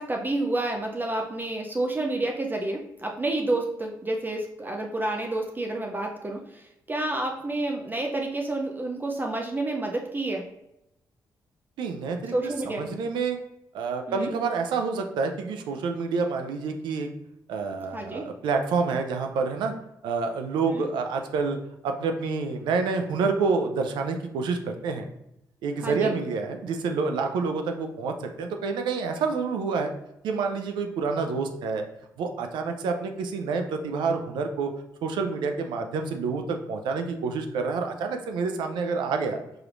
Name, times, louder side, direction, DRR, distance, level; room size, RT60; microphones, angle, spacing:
voice 1, 0.0-10.4 12.3-12.9 14.1-14.3 17.9-18.3 20.7-20.9 25.8-26.1, right 2 dB, 25° right, 1 dB, 0.5 m, -29 dB
voice 2, 11.8-13.4 13.7-17.1 17.5-19.7 20.0-21.6 21.8-25.1 25.6-29.9 30.2-31.8 32.2-34.7 35.0-39.4, right 4 dB, 90° right, 5 dB, 0.5 m, -28 dB
4.9 x 3.0 x 2.5 m, 0.84 s
cardioid pair, 70°, 8 cm